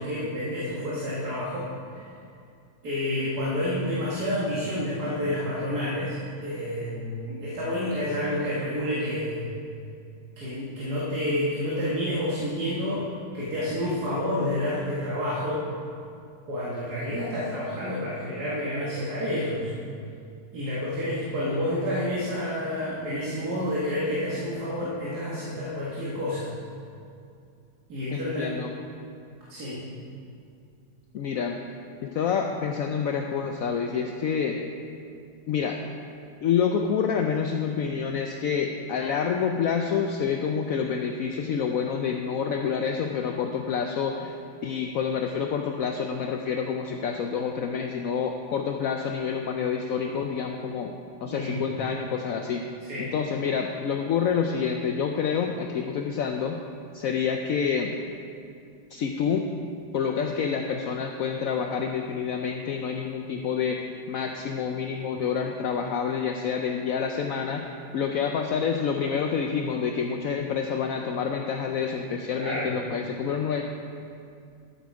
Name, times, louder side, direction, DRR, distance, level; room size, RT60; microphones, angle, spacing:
voice 1, 0.0-2.1 2.8-9.5 10.4-13.1 13.3-15.6 16.5-19.7 20.5-26.5 27.9-28.6 29.5-29.8 51.3-51.7 52.8-53.1 72.4-72.7, left 1 dB, 55° right, -8 dB, 2.3 m, -29 dB
voice 2, 28.1-28.7 31.1-31.6 32.0-34.6 35.5-35.8 36.4-44.4 44.6-50.9 51.2-52.6 53.0-56.6 56.9-57.9 58.9-59.5 59.9-67.6 67.9-73.6, left 6 dB, 70° left, 3 dB, 0.8 m, -28 dB
13.5 x 8.0 x 4.8 m, 2.4 s
omnidirectional pair, 2.0 m